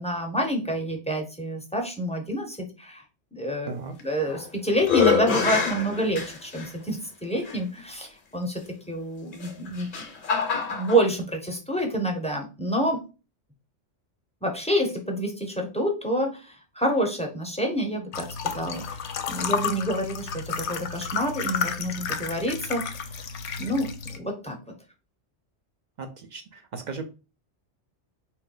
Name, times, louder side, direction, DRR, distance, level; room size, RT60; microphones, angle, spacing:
voice 1, 0.0-3.0 3.3-3.7 4.0-10.1 10.4-13.0 14.4-19.0 19.3-23.2 23.6-23.9 24.2-24.6, right 1 dB, 5° left, 1 dB, 0.6 m, -28 dB
sound 1, 4.0-4.5 4.8-6.7 7.5-7.6 9.3-11.0, left 6 dB, 50° left, 0.8 m, -25 dB
sound 2, 18.1-24.2, left 6 dB, 75° left, 0.9 m, -32 dB
voice 2, 26.0-27.0, right 4 dB, 50° right, 6 dB, 0.6 m, -36 dB
4.3 x 2.2 x 3.8 m, 0.32 s
omnidirectional pair, 1.2 m